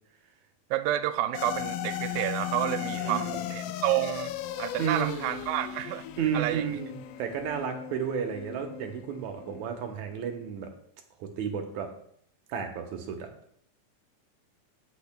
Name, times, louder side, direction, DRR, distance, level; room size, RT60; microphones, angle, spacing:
voice 1, 0.7-4.3 4.6-6.1 6.3-6.8, right 13 dB, 90° right, 12 dB, 2.2 m, -30 dB
sound 1, 1.3-9.9, left 11 dB, 85° left, 2.3 m, -37 dB
voice 2, 2.9-3.4 4.8-5.2 6.2-10.7 11.2-11.9 12.5-13.3, right 7 dB, 70° right, 4 dB, 2.1 m, -32 dB
17.0 x 6.3 x 2.2 m, 0.68 s
omnidirectional pair, 3.9 m